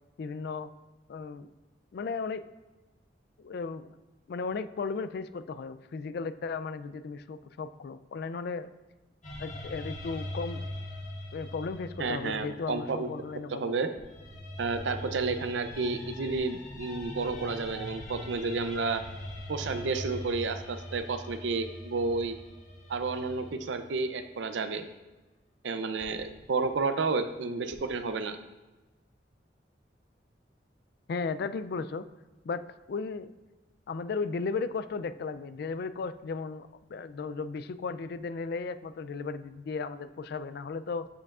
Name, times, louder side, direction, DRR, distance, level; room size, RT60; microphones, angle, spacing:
voice 1, 0.2-0.7 1.1-1.5 1.9-2.4 3.4-3.9 4.3-8.7 9.4-10.6 11.3-13.7 31.1-32.1 32.4-32.6 32.9-33.3 33.9-41.1, left 4 dB, 60° left, 13 dB, 0.3 m, -35 dB
sound 1, 9.2-13.4 14.0-24.0 26.0-27.9, left 1 dB, 45° left, 1.4 m, -42 dB
voice 2, 12.0-13.1 13.6-13.9 14.6-19.0 19.5-22.3 22.9-24.8 25.6-28.4, right 4 dB, 85° right, 9 dB, 0.5 m, -31 dB
7.6 x 6.6 x 2.4 m, 1.2 s
head